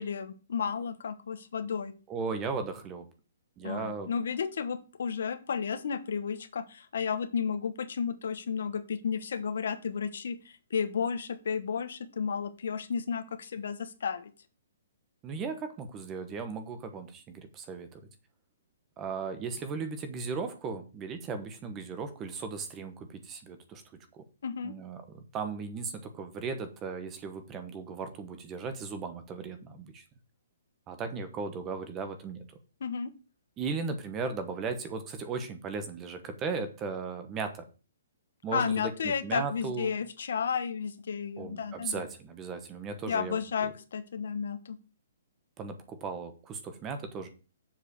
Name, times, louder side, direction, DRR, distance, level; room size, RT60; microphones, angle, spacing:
voice 1, 0.0-1.9 3.6-14.3 24.4-24.7 32.8-33.1 38.5-42.0 43.1-44.8, left 6 dB, 65° left, 10 dB, 1.2 m, -32 dB
voice 2, 2.1-3.1 3.6-4.1 15.2-18.0 19.0-23.8 24.1-24.2 24.6-30.0 30.9-32.4 33.6-37.7 38.4-39.9 41.4-43.7 45.6-47.3, right 5 dB, 15° right, 9 dB, 1.0 m, -37 dB
7.1 x 5.0 x 6.6 m, 0.34 s
hypercardioid pair, 170°, 0 cm